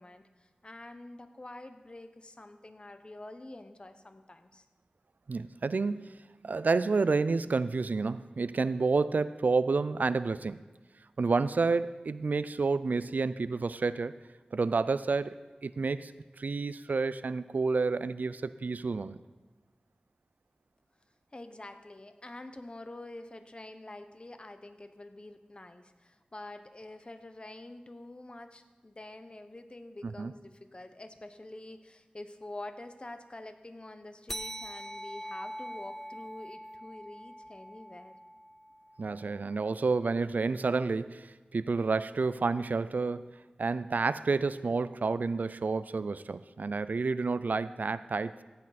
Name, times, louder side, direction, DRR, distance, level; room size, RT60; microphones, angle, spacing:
voice 1, 0.0-4.6 21.3-38.1, left 2 dB, 35° left, 9 dB, 0.9 m, -47 dB
voice 2, 5.3-6.1 6.4-10.6 11.2-14.2 14.5-15.4 15.6-16.1 16.4-19.2 30.0-30.3 39.0-48.4, right 4 dB, 75° right, 15 dB, 0.4 m, -30 dB
sound 1, 34.3-39.2, right 1 dB, 10° left, 0.5 m, -43 dB
15.0 x 8.6 x 4.2 m, 1.2 s
wide cardioid pair, 60°, 3 cm